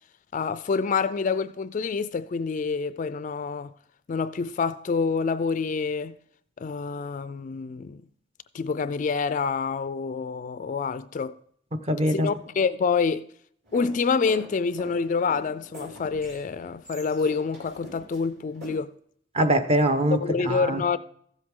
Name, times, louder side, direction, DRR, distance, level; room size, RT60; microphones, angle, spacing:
voice 1, 0.3-3.7 4.1-6.2 6.6-8.0 8.5-11.4 12.0-13.3 13.7-18.9 20.2-21.0, left 5 dB, 40° left, 0.3 m, -27 dB
voice 2, 11.7-12.3 19.3-20.8, right 1 dB, 30° right, 0.9 m, -23 dB
sound 1, 13.7-18.7, right 1 dB, 55° right, 4.8 m, -45 dB
15.0 x 7.8 x 3.7 m
head